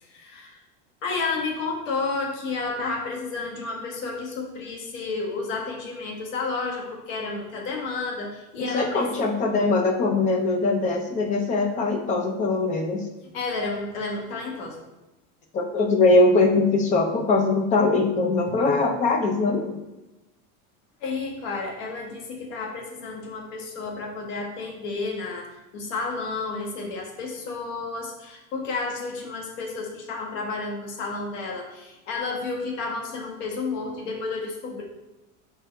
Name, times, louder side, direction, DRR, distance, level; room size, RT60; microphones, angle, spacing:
voice 1, 0.1-0.6 1.0-9.1 13.3-14.8 21.0-34.8, left 3 dB, 75° left, 0 dB, 1.6 m, -31 dB
voice 2, 8.6-13.0 15.5-19.8, left 3 dB, 20° left, 4 dB, 0.5 m, -22 dB
6.2 x 4.7 x 3.3 m, 1.0 s
supercardioid pair, 170°, 38 cm